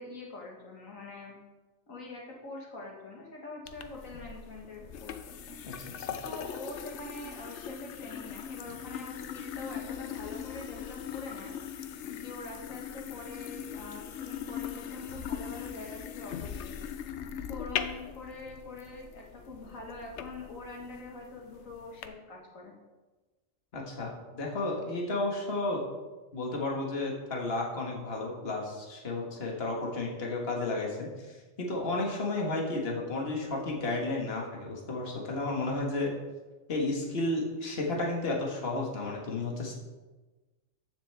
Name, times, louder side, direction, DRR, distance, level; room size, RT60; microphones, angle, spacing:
voice 1, 0.0-1.4 1.9-5.2 5.5-5.9 6.2-11.6 12.1-16.9 17.5-22.7, left 3 dB, 85° left, -1 dB, 1.9 m, -44 dB
sound 1, 3.7-22.1, left 8 dB, 65° left, 0.9 m, -40 dB
voice 2, 23.7-24.1 24.3-25.8 26.3-36.1 36.7-39.7, left 2 dB, 50° left, -1 dB, 1.9 m, -32 dB
14.0 x 7.0 x 3.4 m, 1.2 s
omnidirectional pair, 1.4 m